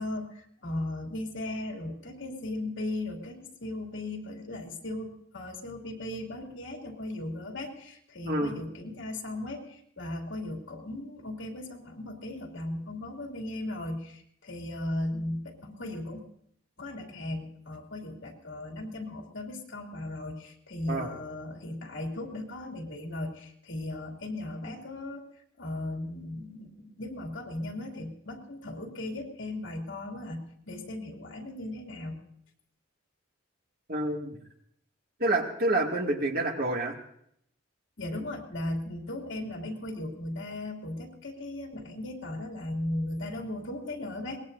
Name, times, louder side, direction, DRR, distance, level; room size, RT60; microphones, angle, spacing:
voice 1, 0.0-16.2 16.8-25.2 25.6-32.2 38.0-44.4, left 1 dB, 75° left, 1 dB, 2.8 m, -37 dB
voice 2, 33.9-34.4 35.2-37.0, right 2 dB, 50° right, 1 dB, 2.2 m, -28 dB
23.0 x 19.5 x 2.7 m, 0.70 s
head